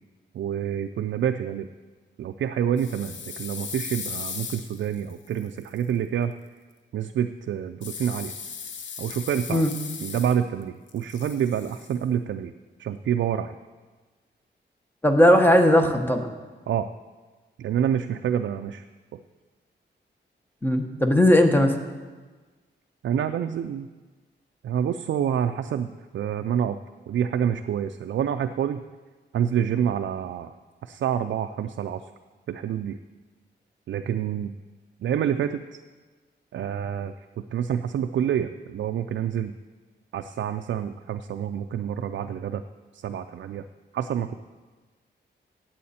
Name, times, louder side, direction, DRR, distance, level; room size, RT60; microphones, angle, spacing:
voice 1, 0.3-1.7 2.2-6.3 6.9-8.3 9.0-9.6 10.0-12.5 12.8-13.6 16.7-16.9 17.6-18.8 19.1-19.2 23.0-23.9 24.6-26.8 27.1-28.8 29.3-30.5 30.8-32.0 32.5-33.0 33.9-34.5 35.0-35.6 36.5-37.1 37.5-39.5 40.1-42.6 42.9-43.6 43.9-44.3, right 9 dB, 90° right, 7 dB, 0.4 m, -27 dB
sound 1, 2.8-5.8 7.8-10.6 10.9-12.0, left 6 dB, 90° left, 0.9 m, -37 dB
voice 2, 15.0-16.3 20.6-21.7, left 1 dB, 10° left, 5 dB, 1.1 m, -18 dB
17.0 x 7.7 x 4.2 m, 1.3 s
wide cardioid pair, 125°, 19 cm